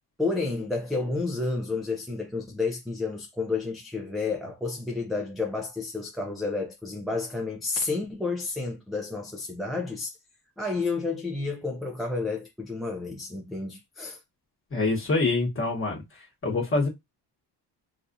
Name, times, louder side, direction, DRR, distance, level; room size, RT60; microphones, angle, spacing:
voice 1, 0.2-10.2 10.6-14.2, left 3 dB, ahead, 0.4 m, -30 dB
voice 2, 14.7-16.0 16.4-16.9, left 3 dB, 30° left, 1.2 m, -25 dB
4.0 x 2.4 x 2.6 m
wide cardioid pair, 145°, 43 cm